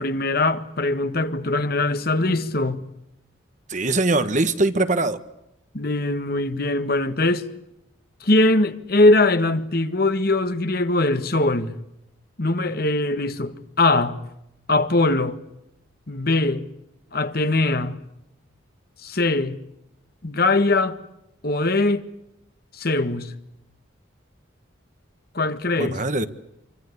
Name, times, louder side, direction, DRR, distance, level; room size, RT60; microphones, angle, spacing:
voice 1, 0.0-2.8 5.7-7.5 8.2-11.8 12.4-14.2 14.7-15.4 16.1-16.7 17.1-18.0 19.0-19.6 20.2-21.0 21.4-22.1 22.7-23.3 25.3-26.0, left 2 dB, 50° left, 1.7 m, -21 dB
voice 2, 3.7-5.2 25.8-26.3, right 2 dB, 40° right, 1.5 m, -22 dB
26.5 x 24.5 x 8.3 m
head